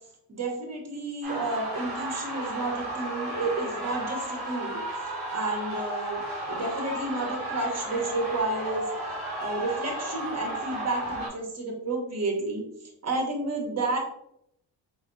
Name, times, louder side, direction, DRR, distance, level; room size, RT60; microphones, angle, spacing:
voice 1, 0.3-4.8 5.3-6.2 6.5-8.9 9.4-12.6 13.0-14.0, right 2 dB, 35° right, 1 dB, 1.3 m, -31 dB
sound 1, 1.2-11.3, right 1 dB, 85° right, 1.3 m, -34 dB
4.3 x 2.7 x 2.6 m, 0.75 s
hypercardioid pair, 50°, 44 cm